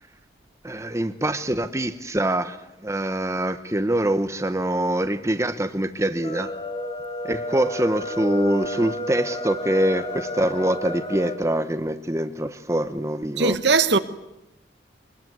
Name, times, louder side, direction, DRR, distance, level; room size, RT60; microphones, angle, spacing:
voice 1, 0.6-2.6 2.8-6.5 7.2-13.6, right 1 dB, 15° right, 0.9 m, -24 dB
sound 1, 6.1-11.4, left 1 dB, 30° left, 4.2 m, -31 dB
voice 2, 13.4-14.0, right 4 dB, 65° right, 1.1 m, -19 dB
23.5 x 21.0 x 9.5 m
head